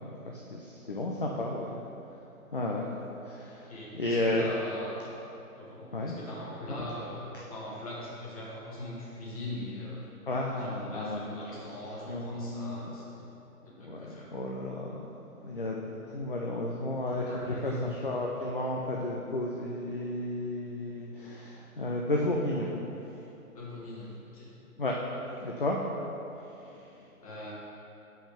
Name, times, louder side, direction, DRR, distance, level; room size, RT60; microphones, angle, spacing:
voice 1, 0.0-1.8 2.5-2.9 3.2-4.4 5.9-6.1 6.7-6.8 10.3-11.4 12.1-12.9 13.8-15.1 15.4-22.7 23.0-23.1 24.8-24.9 25.4-25.8 26.6-26.9, left 1 dB, 40° left, -1 dB, 0.4 m, -33 dB
voice 2, 3.7-5.1 5.5-10.0 10.5-13.4 13.6-14.3 17.3-17.9 23.5-24.5 27.2-27.5, left 1 dB, 25° left, -5 dB, 1.2 m, -41 dB
5.6 x 5.3 x 5.0 m, 2.9 s
figure-of-eight pair, 145°, 45 cm